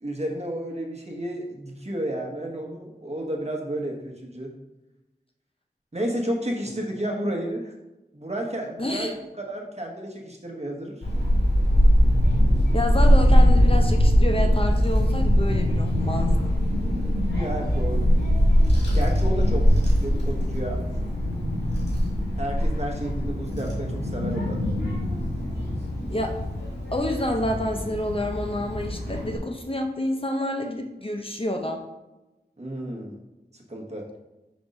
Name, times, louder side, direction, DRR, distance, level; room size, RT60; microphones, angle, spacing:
voice 1, 0.0-4.5 5.9-7.7 8.1-11.0 17.0-17.1 17.4-18.1 18.9-19.7 20.0-20.8 22.4-24.6 32.6-33.1 33.5-34.0, right 1 dB, 40° right, 1 dB, 1.1 m, -31 dB
voice 2, 8.8-9.1 12.7-16.5 26.1-26.3 26.9-31.8, left 1 dB, 30° left, 3 dB, 0.6 m, -28 dB
Child speech kid speaking / Wind, 11.0-29.4, equal, 90° left, 1.9 m, -22 dB
5.1 x 3.5 x 5.2 m, 1.0 s
wide cardioid pair, 55°, 17 cm